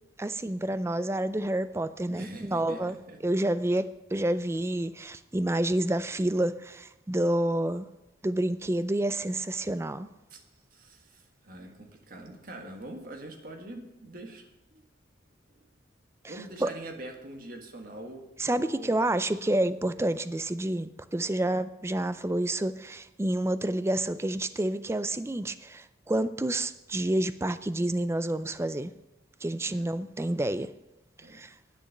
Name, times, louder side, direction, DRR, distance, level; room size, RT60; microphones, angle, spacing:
voice 1, 0.2-3.0 3.2-7.9 8.2-10.1 16.6-16.7 18.4-28.9 29.4-30.7 31.3-31.5, right 1 dB, 15° right, 13 dB, 0.4 m, -29 dB
voice 2, 2.1-3.2 10.3-10.4 10.7-14.8 16.3-19.0 21.2-21.4 29.6-29.9 31.2-31.5, right 1 dB, 50° right, 3 dB, 1.6 m, -44 dB
10.0 x 8.9 x 6.5 m, 0.94 s
head